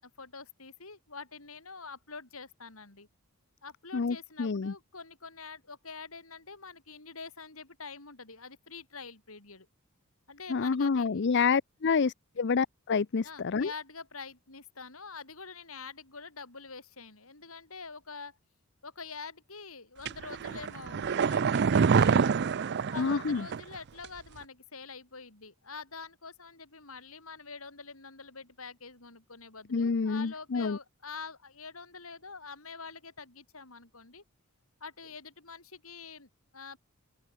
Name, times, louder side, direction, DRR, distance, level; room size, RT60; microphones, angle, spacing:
voice 1, 0.0-3.1 3.6-9.7 10.3-11.2 13.2-18.4 18.8-22.4 22.9-34.2 34.8-36.8, left 4 dB, 70° left, 4.8 m, -46 dB
voice 2, 3.9-4.7 10.5-13.7 23.0-23.5 29.7-30.8, left 5 dB, 50° left, 0.5 m, -28 dB
sound 1, 20.0-23.8 24.0-24.1, right 6 dB, 50° right, 0.4 m, -26 dB
open air
head